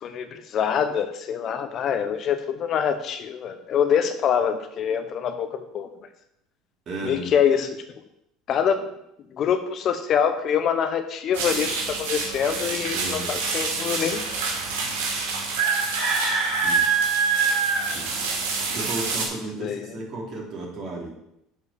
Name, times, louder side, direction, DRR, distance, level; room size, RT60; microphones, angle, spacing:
voice 1, 0.0-5.9 7.0-7.8 8.5-8.9 9.3-14.2 19.6-19.9, left 8 dB, 50° left, 9 dB, 0.9 m, -25 dB
voice 2, 6.8-7.3 12.9-13.3 16.6-16.9 17.9-18.1 18.7-21.1, right 2 dB, 45° right, -3 dB, 3.3 m, -34 dB
sound 1, 11.3-19.3, right 4 dB, 85° right, 2.5 m, -25 dB
7.2 x 4.8 x 6.9 m, 0.79 s
supercardioid pair, 100°, 0 cm